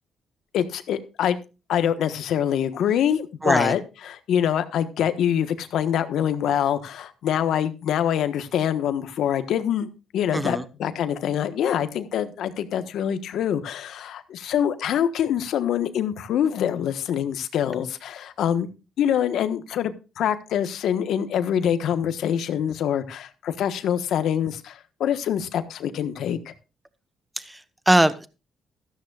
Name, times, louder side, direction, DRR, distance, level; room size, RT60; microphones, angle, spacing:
voice 1, 0.5-1.4 1.7-9.9 10.1-18.7 19.0-26.5, left 9 dB, 75° left, 11 dB, 1.3 m, -25 dB
voice 2, 3.4-3.8 10.3-10.6 27.4-28.3, right 1 dB, 10° right, 13 dB, 1.1 m, -21 dB
14.0 x 13.0 x 2.4 m, 0.30 s
cardioid pair, 90°, 0 cm